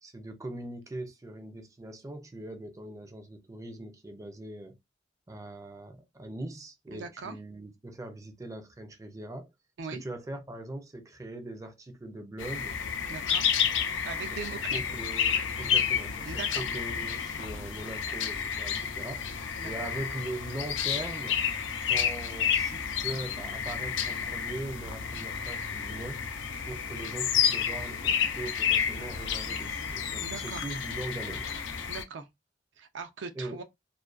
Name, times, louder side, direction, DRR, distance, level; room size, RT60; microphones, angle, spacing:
voice 1, 0.0-4.7 5.3-9.5 9.9-12.8 14.3-21.4 21.9-26.2 26.7-31.5 33.4-33.6, right 1 dB, 20° right, 0.4 m, -41 dB
voice 2, 6.9-7.4 9.8-10.0 13.1-13.5 14.1-14.8 16.3-16.6 19.6-19.9 30.2-30.6 31.9-32.3 32.8-33.6, right 5 dB, 80° right, 0.4 m, -40 dB
sound 1, 12.4-32.0, left 7 dB, 90° left, 0.5 m, -30 dB
2.4 x 2.2 x 2.3 m
head